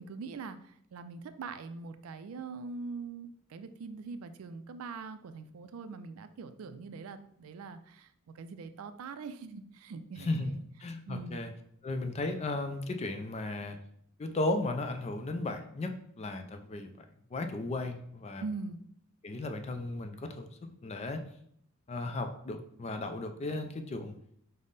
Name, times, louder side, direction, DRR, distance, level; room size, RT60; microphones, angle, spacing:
voice 1, 0.0-8.1 8.3-10.6 11.1-11.4 18.4-18.8, right 4 dB, 70° right, 10 dB, 0.4 m, -42 dB
voice 2, 10.2-10.5 10.8-11.5 11.8-13.8 14.2-17.1 17.3-18.4 19.2-21.2 21.9-24.1, left 2 dB, 30° left, 6 dB, 0.4 m, -35 dB
5.2 x 2.1 x 3.9 m, 0.68 s
head